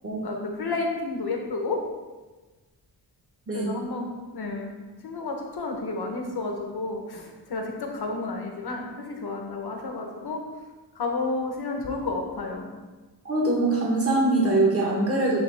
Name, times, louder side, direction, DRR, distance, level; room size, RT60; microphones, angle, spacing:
voice 1, 0.2-1.8 3.5-4.7 5.0-10.4 11.0-12.7, left 3 dB, 65° left, 2 dB, 1.1 m, -31 dB
voice 2, 13.2-15.4, right 2 dB, 35° right, -4 dB, 1.5 m, -23 dB
10.0 x 3.4 x 3.5 m, 1.2 s
wide cardioid pair, 140°, 42 cm